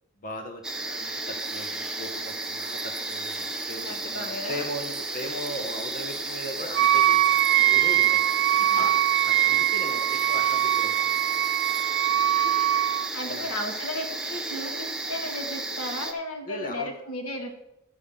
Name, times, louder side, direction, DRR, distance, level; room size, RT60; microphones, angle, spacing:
voice 1, 0.2-11.2 13.2-13.5 16.4-16.9, equal, 40° left, 3 dB, 1.2 m, -38 dB
sound 1, 0.6-16.1, right 2 dB, 5° right, 0.9 m, -33 dB
sound 2, 1.4-11.8, right 13 dB, 80° right, 1.0 m, -49 dB
voice 2, 3.9-4.7 8.7-8.8 12.4-12.6 12.9-17.5, left 1 dB, 85° left, 3 dB, 2.0 m, -35 dB
Wind instrument woodwind instrument, 6.7-13.1, right 13 dB, 55° right, 0.3 m, -22 dB
12.0 x 5.5 x 6.8 m, 0.83 s
head